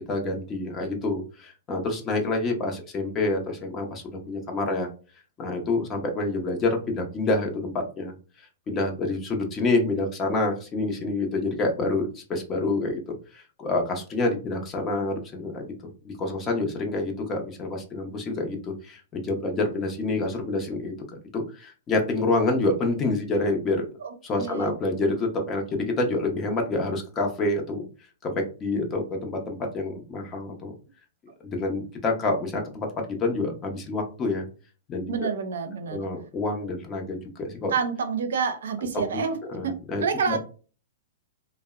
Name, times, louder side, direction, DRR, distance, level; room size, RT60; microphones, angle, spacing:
voice 1, 0.0-4.9 5.4-7.7 8.0-8.1 8.7-15.7 16.0-20.9 21.3-23.8 24.2-27.9 28.2-30.7 31.4-34.5 34.9-35.3 35.9-37.7 38.9-39.2 39.5-40.4, left 2 dB, 25° left, 0.6 m, -27 dB
voice 2, 24.0-24.7 35.1-36.0 37.7-39.7 40.0-40.4, right 6 dB, 75° right, 0.5 m, -28 dB
2.6 x 2.0 x 2.3 m
hypercardioid pair, 130°, 0 cm